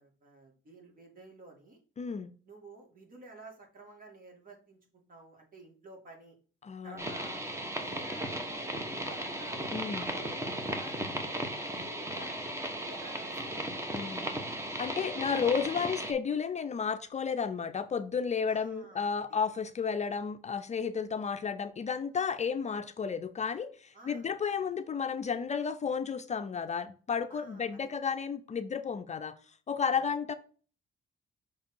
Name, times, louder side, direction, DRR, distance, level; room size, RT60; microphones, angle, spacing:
voice 1, 0.0-1.8 2.5-6.4 6.8-7.4 7.8-9.6 9.9-12.4 12.8-14.1 18.5-19.4 23.9-24.6 27.3-27.8 29.9-30.1, right 2 dB, 45° right, 1 dB, 2.5 m, -52 dB
voice 2, 2.0-2.3 6.6-7.0 9.7-10.1 13.9-14.2 14.8-29.4 29.7-30.3, left 6 dB, 35° left, 10 dB, 0.5 m, -32 dB
sound 1, 7.0-16.1, right 1 dB, 15° right, 1.2 m, -36 dB
6.0 x 3.7 x 4.4 m, 0.40 s
cardioid pair, 90°, 20 cm